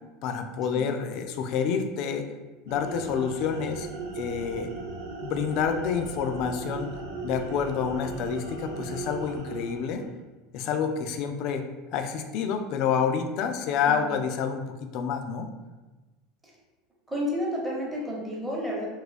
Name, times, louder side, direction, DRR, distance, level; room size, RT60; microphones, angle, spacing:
voice 1, 0.2-2.3 2.7-3.9 4.2-4.7 5.2-6.9 7.2-10.1 10.5-15.5, left 6 dB, 55° left, 7 dB, 0.4 m, -28 dB
sound 1, 2.7-10.2, right 3 dB, 85° right, 0.5 m, -37 dB
voice 2, 17.1-18.9, equal, 10° right, -5 dB, 0.9 m, -31 dB
2.7 x 2.3 x 3.9 m, 1.2 s
supercardioid pair, 120°, 0 cm